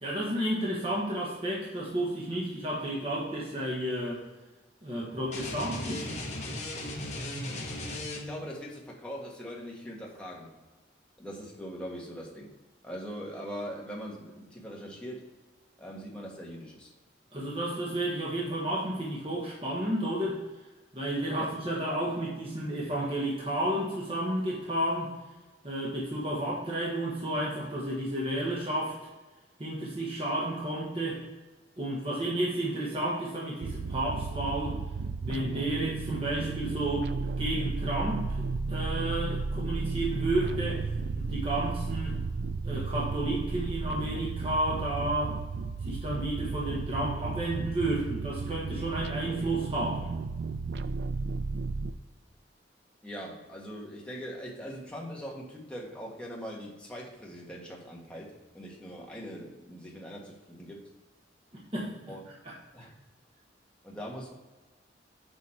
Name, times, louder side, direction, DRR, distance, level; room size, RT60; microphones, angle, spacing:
voice 1, 0.0-4.2 4.8-6.1 17.3-20.4 20.9-25.1 25.6-29.0 29.6-31.2 31.8-34.8 35.2-40.9 41.1-42.2 42.6-45.4 45.8-50.2 61.5-61.9 62.4-62.9, right 1 dB, 30° right, -5 dB, 1.3 m, -32 dB
sound 1, 5.3-8.5, left 1 dB, 40° left, 1.3 m, -37 dB
voice 2, 8.1-10.5 11.2-12.5 12.8-15.2 15.8-16.9 21.3-21.5 53.0-60.8 62.1-62.2 62.7-62.9 63.8-64.3, equal, 5° left, -3 dB, 1.4 m, -41 dB
sound 2, 33.6-51.9, right 4 dB, 65° right, 0.3 m, -34 dB
6.6 x 5.1 x 4.3 m, 1.2 s
head